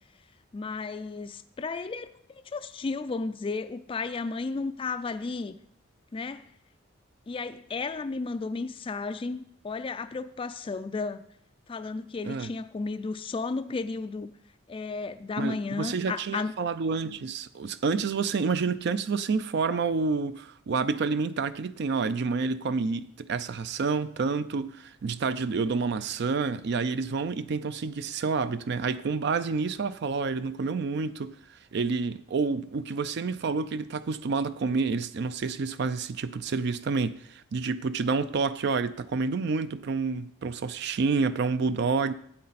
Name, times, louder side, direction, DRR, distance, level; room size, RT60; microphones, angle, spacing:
voice 1, 0.5-5.6 6.1-6.5 7.3-11.3 11.7-14.3 14.7-16.5, left 4 dB, 25° left, 0.3 m, -33 dB
voice 2, 15.4-42.1, right 4 dB, 55° right, 0.4 m, -29 dB
12.5 x 8.5 x 4.1 m
head